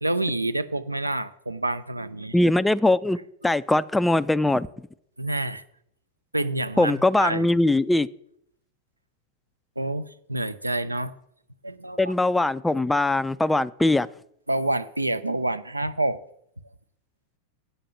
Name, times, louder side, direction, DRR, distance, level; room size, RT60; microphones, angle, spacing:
voice 1, 0.0-2.4 5.2-5.6 6.3-7.5 9.8-11.1 11.6-12.1 14.5-16.2, right 2 dB, 85° right, 0.4 m, -28 dB
voice 2, 2.3-3.2 3.4-4.7 6.8-8.1 12.0-14.1, left 2 dB, 5° left, 0.3 m, -21 dB
8.3 x 5.2 x 7.1 m
figure-of-eight pair, 90°, 0 cm